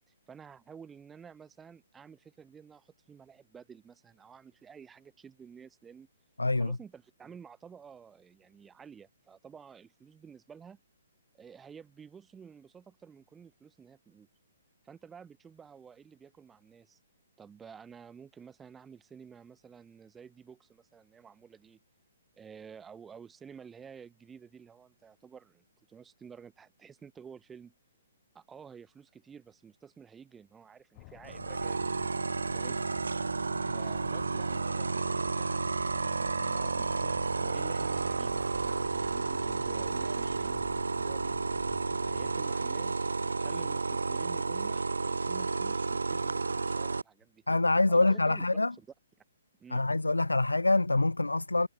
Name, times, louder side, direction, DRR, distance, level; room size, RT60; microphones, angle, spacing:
voice 1, 0.1-6.1 6.6-10.8 11.3-14.3 14.8-17.0 17.4-21.8 22.4-27.7 28.3-31.9 32.5-32.8 33.6-35.5 35.9-41.3 42.0-47.4 47.9-48.4 48.8-48.9 49.6-49.8, right 6 dB, 10° right, 3.4 m, -51 dB
voice 2, 6.4-6.8 47.5-48.7 49.7-51.7, left 2 dB, 80° left, 0.5 m, -25 dB
sound 1, 30.9-42.4, left 28 dB, 30° left, 3.5 m, -51 dB
sound 2, 31.3-47.0, right 4 dB, 75° right, 0.3 m, -31 dB
figure-of-eight pair, 130°, 0 cm